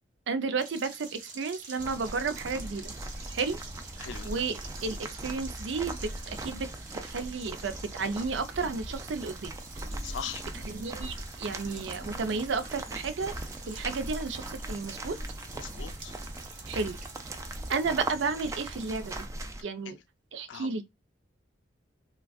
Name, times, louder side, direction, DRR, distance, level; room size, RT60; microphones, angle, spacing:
voice 1, 0.3-2.9 3.3-3.6 4.2-6.7 7.0-9.5 10.5-13.3 13.7-15.1 16.7-17.0 17.7-19.3 19.6-20.0 20.3-20.8, right 4 dB, 75° right, 0.5 m, -32 dB
sound 1, 0.6-19.3, right 4 dB, 45° right, 0.8 m, -48 dB
sound 2, 1.8-19.6, right 1 dB, 15° right, 0.4 m, -40 dB
voice 2, 4.0-4.3 10.0-10.4 15.5-16.2 19.9-20.0 20.5-20.7, left 8 dB, 75° left, 0.4 m, -40 dB
3.4 x 2.3 x 2.3 m
head